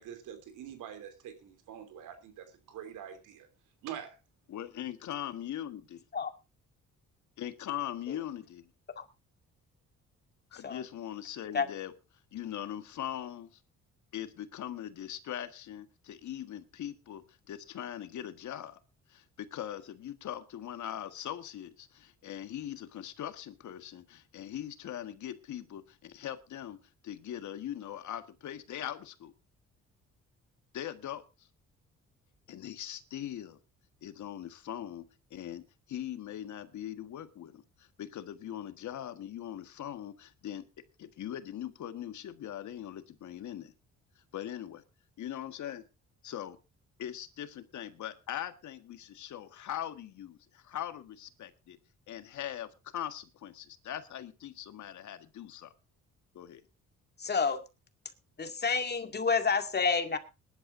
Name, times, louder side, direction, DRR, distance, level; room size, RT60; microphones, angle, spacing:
voice 1, 0.0-2.5 2.7-3.1 3.8-4.1, right 9 dB, 85° right, 3.2 m, -44 dB
voice 2, 4.5-6.0 7.4-8.7 10.5-11.9 12.3-13.6 14.1-18.8 19.1-26.8 27.0-29.3 30.7-31.2 32.5-33.6 34.0-35.6 35.9-40.6 41.0-43.7 44.3-44.8 45.2-45.8 46.2-46.6 47.0-51.8 52.1-55.7 56.3-56.6, left 11 dB, 70° left, 1.7 m, -41 dB
voice 3, 57.2-57.6 58.4-60.2, left 5 dB, 35° left, 2.3 m, -29 dB
21.0 x 11.5 x 2.6 m
cardioid pair, 90°, 30 cm